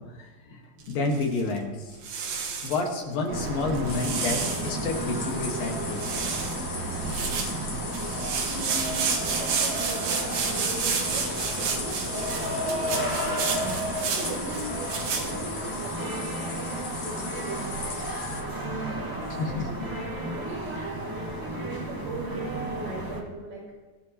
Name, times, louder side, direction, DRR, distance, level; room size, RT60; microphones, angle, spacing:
voice 1, 0.0-2.0 2.6-6.0 19.4-19.7 20.8-20.9, left 3 dB, 75° left, 1 dB, 3.3 m, -30 dB
sound 1, 0.8-1.6 2.0-2.8 3.5-4.7 5.2-5.3 5.5-5.7 6.0-6.6 6.9-15.3, right 6 dB, 80° right, 3.3 m, -31 dB
sound 2, 3.3-23.2, right 1 dB, 15° right, 0.8 m, -33 dB
sound 3, 3.9-18.4, left 5 dB, 50° left, 2.3 m, -38 dB
voice 2, 8.4-13.5 14.1-20.9 21.4-23.6, right 2 dB, 60° right, -5 dB, 5.3 m, -39 dB
24.0 x 12.0 x 3.0 m, 1.2 s
omnidirectional pair, 4.1 m